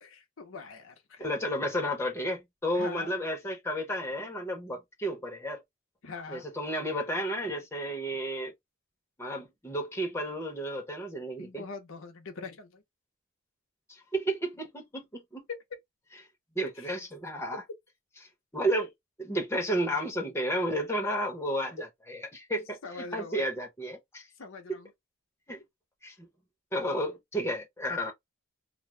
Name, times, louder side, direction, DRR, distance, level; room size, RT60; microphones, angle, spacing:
voice 1, 0.0-1.3 2.7-3.1 6.0-6.4 11.4-12.8 15.5-15.6 16.8-16.9 22.8-23.5 24.4-24.9, left 4 dB, 75° left, 0.7 m, -42 dB
voice 2, 1.2-5.6 6.3-8.5 9.2-11.7 13.9-15.5 16.5-17.6 18.5-18.9 19.2-24.2 24.7-24.8 25.5-25.6 26.0-26.3 26.7-28.1, equal, 10° left, 0.9 m, -32 dB
2.5 x 2.2 x 3.1 m
head